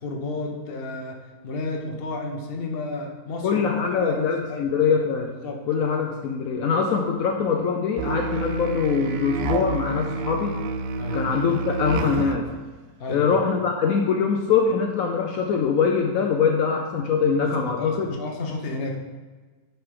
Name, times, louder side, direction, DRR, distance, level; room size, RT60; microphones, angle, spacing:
voice 1, 0.0-4.7 5.3-5.6 11.0-11.3 13.0-13.4 17.4-19.0, left 2 dB, 45° left, 2 dB, 1.1 m, -32 dB
voice 2, 3.4-5.3 5.7-10.6 11.1-12.5 13.1-18.2, left 6 dB, 70° left, 2 dB, 1.0 m, -23 dB
Musical instrument, 8.0-12.5, right 4 dB, 70° right, 0.6 m, -29 dB
11.0 x 4.0 x 3.7 m, 1.3 s
omnidirectional pair, 1.6 m